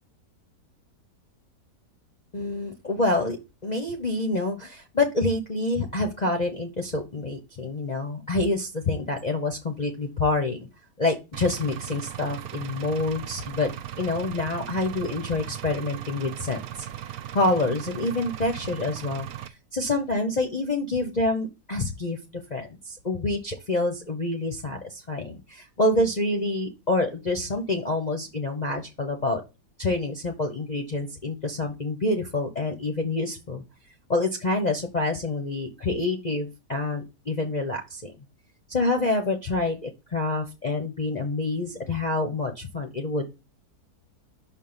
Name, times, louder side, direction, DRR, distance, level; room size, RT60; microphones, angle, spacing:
voice 1, 2.3-3.4 3.6-10.6 11.0-13.7 14.0-16.9 17.3-22.2 22.5-29.4 29.8-33.6 34.1-38.1 38.7-43.4, left 2 dB, 35° left, 2 dB, 0.8 m, -27 dB
Engine, 11.3-19.5, right 11 dB, 70° right, 1.0 m, -37 dB
6.1 x 4.6 x 5.6 m, 0.26 s
omnidirectional pair, 1.8 m